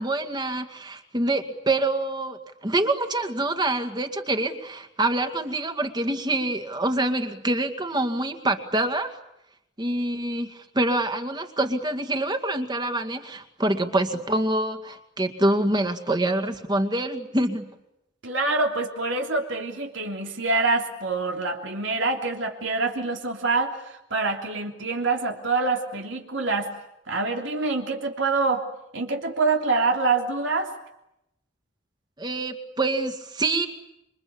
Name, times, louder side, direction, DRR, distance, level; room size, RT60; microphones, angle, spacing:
voice 1, 0.0-9.2 9.8-17.7 32.2-33.7, right 2 dB, 25° right, 7 dB, 2.2 m, -26 dB
voice 2, 18.2-26.7 27.1-28.6 28.9-30.7, right 3 dB, 85° right, 2 dB, 3.3 m, -25 dB
27.0 x 24.5 x 8.6 m, 0.84 s
head